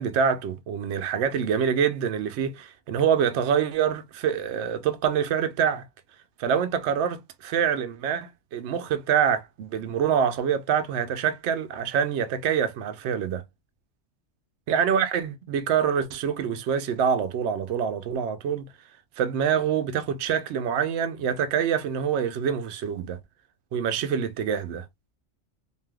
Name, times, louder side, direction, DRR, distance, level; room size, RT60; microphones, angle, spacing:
voice 1, 0.0-5.8 6.4-13.4 14.7-18.7 19.2-23.2 23.7-24.8, right 8 dB, 70° right, 0.8 m, -25 dB
3.2 x 2.7 x 2.2 m
omnidirectional pair, 1.3 m